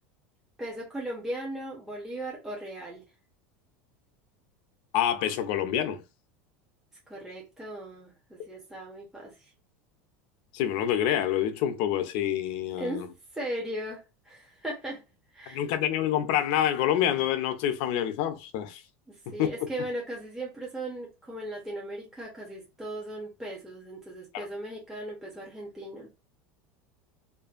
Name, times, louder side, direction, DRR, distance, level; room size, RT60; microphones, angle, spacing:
voice 1, 0.6-3.0 7.1-9.5 12.8-13.0 13.3-15.0 15.3-15.7 19.1-26.1, right 1 dB, 5° right, 0.8 m, -37 dB
voice 2, 4.9-6.0 10.5-13.1 15.5-18.8 19.4-19.5 24.3-24.5, left 10 dB, 65° left, 0.5 m, -27 dB
2.6 x 2.5 x 2.4 m
supercardioid pair, 125°, 6 cm